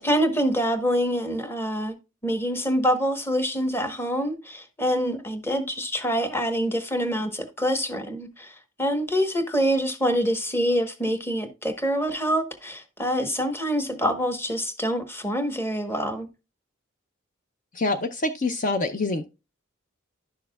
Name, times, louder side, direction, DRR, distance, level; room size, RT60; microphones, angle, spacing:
voice 1, 0.0-1.9 2.2-16.3, equal, 10° left, 1.1 m, -26 dB
voice 2, 17.7-19.3, left 2 dB, 40° left, 0.6 m, -26 dB
11.0 x 6.4 x 2.3 m
head